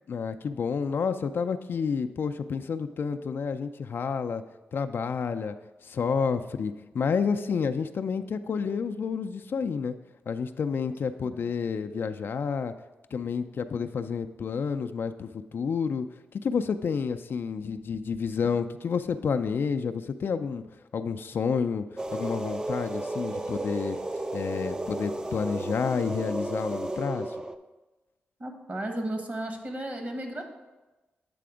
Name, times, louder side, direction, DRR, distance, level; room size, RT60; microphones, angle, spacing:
voice 1, 0.1-4.4 4.7-5.6 5.8-10.0 10.3-12.7 13.1-16.1 16.3-20.6 20.9-24.0 24.3-27.4, left 6 dB, 65° left, 8 dB, 0.3 m, -30 dB
voice 2, 11.2-11.6 28.4-30.4, right 1 dB, 40° right, 4 dB, 1.2 m, -34 dB
sound 1, 22.0-27.5, right 2 dB, 20° right, 0.4 m, -33 dB
8.5 x 3.4 x 5.0 m, 1.1 s
cardioid pair, 65°, 4 cm